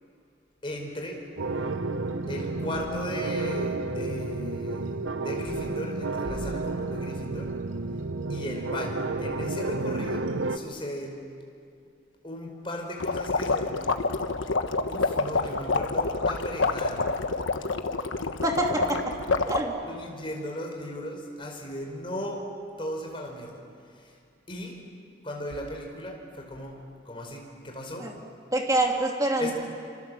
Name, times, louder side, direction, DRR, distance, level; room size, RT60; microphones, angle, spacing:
voice 1, 0.6-1.2 2.3-7.5 8.3-11.2 12.2-13.8 14.9-17.1 18.7-19.0 19.8-22.4 22.8-23.6 24.0-24.2 24.5-24.8 25.2-26.7 27.0-28.1 29.4-29.5, left 1 dB, 25° left, 1 dB, 4.8 m, -36 dB
sound 1, 1.4-10.6, right 3 dB, 90° right, 0.9 m, -31 dB
sound 2, 13.0-19.6, left 3 dB, 90° left, 1.3 m, -27 dB
voice 2, 18.4-19.0 19.5-19.8 28.0-28.1 28.5-29.5, right 2 dB, 20° right, 1 dB, 2.8 m, -25 dB
27.5 x 26.5 x 7.7 m, 2.4 s
head